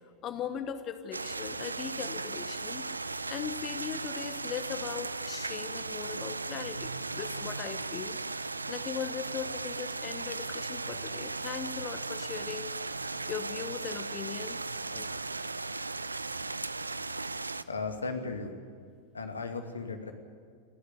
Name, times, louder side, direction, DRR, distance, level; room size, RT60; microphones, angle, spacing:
voice 1, 0.2-15.1, left 8 dB, 30° left, 9 dB, 1.2 m, -40 dB
sound 1, 1.1-17.6, right 3 dB, 80° right, 0.6 m, -37 dB
voice 2, 17.7-18.6 19.1-20.1, left 4 dB, 75° left, 5 dB, 2.4 m, -36 dB
29.5 x 12.0 x 9.8 m, 2.2 s
figure-of-eight pair, 90°, 0 cm